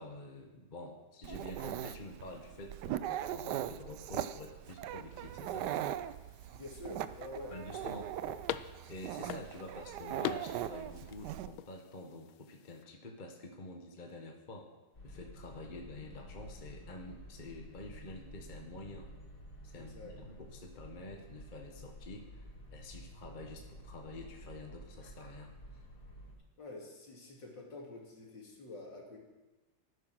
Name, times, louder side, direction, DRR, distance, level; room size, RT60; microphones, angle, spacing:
voice 1, 0.0-5.7 7.5-8.2 8.9-14.7 15.0-19.1 19.6-25.8, left 2 dB, 25° left, 2 dB, 1.2 m, -48 dB
Dog, 1.2-11.5, right 12 dB, 75° right, 1.0 m, -40 dB
sound 1, 5.1-12.8, left 12 dB, 85° left, 1.4 m, -45 dB
voice 2, 6.5-8.3 19.7-20.1 26.6-29.2, left 2 dB, 60° left, -1 dB, 3.3 m, -48 dB
sound 2, 14.9-26.3, equal, 45° left, 4.6 m, -51 dB
14.5 x 9.7 x 6.2 m, 1.2 s
omnidirectional pair, 2.2 m